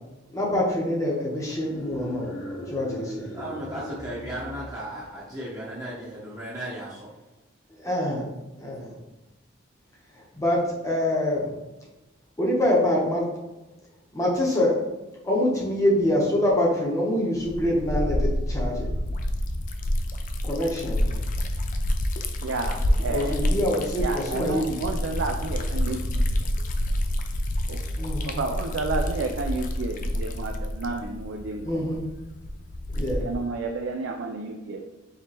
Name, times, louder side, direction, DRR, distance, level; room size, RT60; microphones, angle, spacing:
voice 1, 0.3-2.3 2.7-3.3 7.8-8.3 8.6-8.9 10.4-11.5 12.4-13.3 14.1-14.8 15.2-18.9 20.4-21.1 23.1-24.8 28.0-28.4 31.6-32.0 32.9-33.2, left 1 dB, 15° left, -4 dB, 0.8 m, -25 dB
sound 1, 1.6-5.3, left 1 dB, 70° left, 0.9 m, -39 dB
voice 2, 3.3-7.1, right 1 dB, 15° right, -8 dB, 0.8 m, -35 dB
Liquid, 17.4-33.5, left 1 dB, 40° left, 0.4 m, -28 dB
voice 3, 22.4-23.4 24.0-26.2 27.7-27.8 28.2-32.0 33.0-34.8, right 3 dB, 65° right, 3 dB, 0.4 m, -31 dB
4.9 x 3.1 x 2.9 m, 1.0 s
head